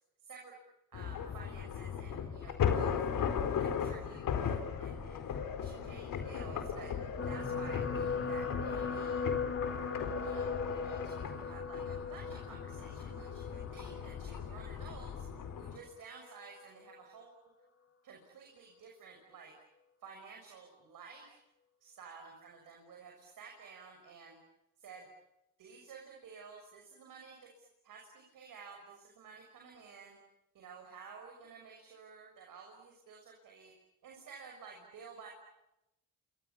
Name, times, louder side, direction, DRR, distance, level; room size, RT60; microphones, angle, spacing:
voice 1, 0.2-0.6 0.9-3.0 3.5-5.2 5.6-6.9 7.3-9.2 10.2-15.2 15.6-17.4 18.0-19.5 20.0-21.4 21.8-24.4 24.8-25.1 25.6-30.2 30.5-33.7 34.0-35.3, right 5 dB, 70° right, 1 dB, 6.5 m, -53 dB
sound 1, 0.9-15.8, left 7 dB, 75° left, 4.5 m, -37 dB
sound 2, 7.2-15.6 16.4-16.6 16.9-17.0, left 5 dB, 40° left, 3.6 m, -39 dB
28.5 x 27.0 x 7.2 m, 0.88 s
cardioid pair, 70°, 34 cm